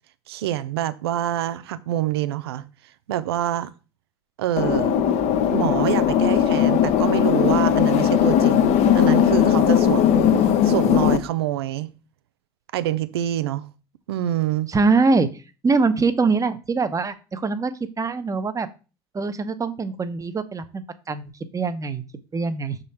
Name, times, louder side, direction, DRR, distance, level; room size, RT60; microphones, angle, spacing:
voice 1, 0.3-2.6 3.1-3.7 4.4-4.9 5.5-11.9 12.7-13.6 14.1-14.7, right 12 dB, 85° right, 0.5 m, -26 dB
sound 1, 4.6-11.2, left 9 dB, 60° left, 0.8 m, -18 dB
voice 2, 14.7-15.3 15.6-18.7 19.1-22.0 22.3-22.8, right 4 dB, 25° right, 0.9 m, -23 dB
6.2 x 3.8 x 4.2 m
hypercardioid pair, 70°, 13 cm